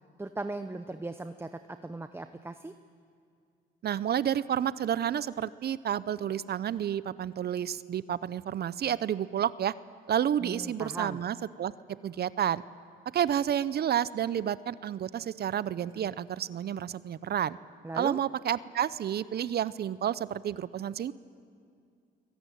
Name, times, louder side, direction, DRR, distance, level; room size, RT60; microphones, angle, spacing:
voice 1, 0.2-2.7 10.4-11.2 17.8-18.2, right 2 dB, 10° right, 9 dB, 0.8 m, -38 dB
voice 2, 3.8-9.7 10.1-11.7 12.0-12.6 13.1-17.6 17.9-21.1, right 10 dB, 55° right, 17 dB, 0.6 m, -30 dB
22.5 x 19.5 x 9.3 m, 2.3 s
cardioid pair, 90°, 20 cm